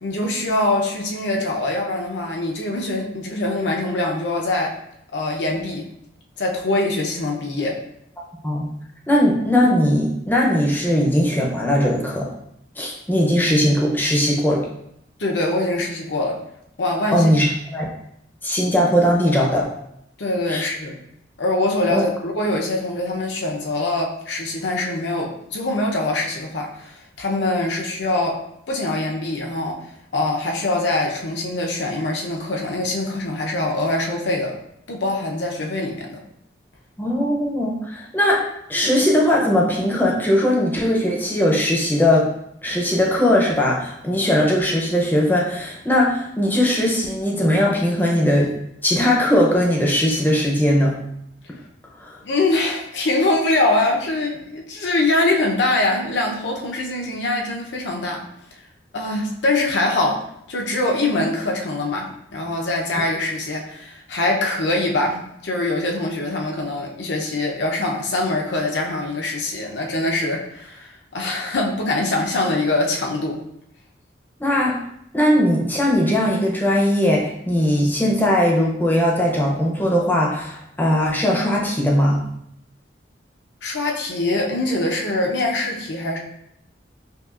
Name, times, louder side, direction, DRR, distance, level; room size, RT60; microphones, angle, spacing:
voice 1, 0.0-4.7 5.1-5.8 6.4-7.8 15.2-16.4 16.8-17.3 20.2-21.0 21.4-28.4 28.7-29.8 30.1-34.6 34.9-36.2 52.2-58.2 58.9-60.2 60.5-73.4 83.6-86.2, left 2 dB, 75° left, 0 dB, 0.7 m, -23 dB
voice 2, 9.1-12.3 12.8-14.6 17.1-17.5 17.7-17.9 18.4-19.7 20.5-20.6 21.9-22.0 37.0-38.4 38.7-42.2 42.6-48.5 48.8-51.0 52.0-52.1 74.4-74.8 75.1-82.2, left 1 dB, 10° left, -2 dB, 0.6 m, -19 dB
5.5 x 2.4 x 2.4 m, 0.75 s
head